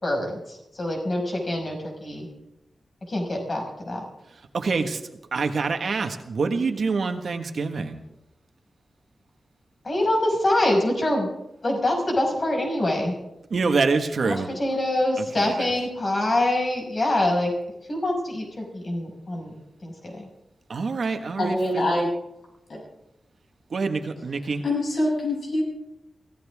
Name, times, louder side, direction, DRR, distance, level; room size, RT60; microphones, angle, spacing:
voice 1, 0.0-2.3 3.1-4.0 9.8-11.3 11.6-13.2 14.2-17.5 17.9-19.5 19.8-20.3, left 1 dB, 40° left, 1 dB, 5.8 m, -25 dB
voice 2, 4.5-5.0 5.3-8.0 13.5-14.5 15.2-15.7 20.7-21.9 23.7-24.6, right 4 dB, 65° right, 6 dB, 1.5 m, -26 dB
voice 3, 21.4-22.1 22.7-22.8 24.6-25.6, left 1 dB, 65° left, -2 dB, 7.9 m, -24 dB
24.0 x 16.5 x 3.6 m, 0.88 s
wide cardioid pair, 110°, 0 cm